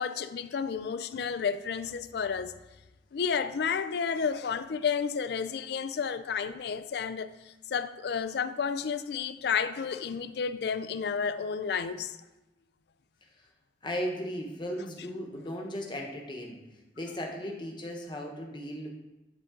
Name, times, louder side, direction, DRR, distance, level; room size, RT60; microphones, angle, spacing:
voice 1, 0.0-2.5 3.1-7.3 7.7-12.2, left 6 dB, 65° left, 0.4 m, -31 dB
voice 2, 13.8-16.6 17.0-18.9, equal, 25° left, 1.1 m, -36 dB
10.5 x 3.8 x 3.8 m
head